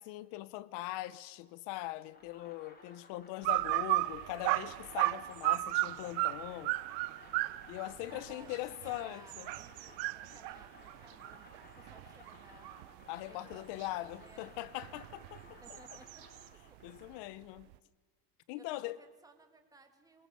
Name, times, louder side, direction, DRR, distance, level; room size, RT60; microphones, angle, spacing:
voice 1, 0.0-6.7 7.7-9.5 13.1-15.4 15.7-15.8 16.8-17.7 18.5-19.0, left 16 dB, 55° left, 0.9 m, -41 dB
sound 1, 2.1-17.3, left 3 dB, 20° left, 2.6 m, -58 dB
sound 2, 3.4-13.0 13.5-16.5, right 21 dB, 85° right, 0.7 m, -35 dB
voice 2, 8.1-14.6 15.4-16.3 17.2-17.6 18.5-20.3, right 3 dB, 5° right, 1.7 m, -59 dB
23.0 x 22.0 x 6.8 m
cardioid pair, 160°, 50 cm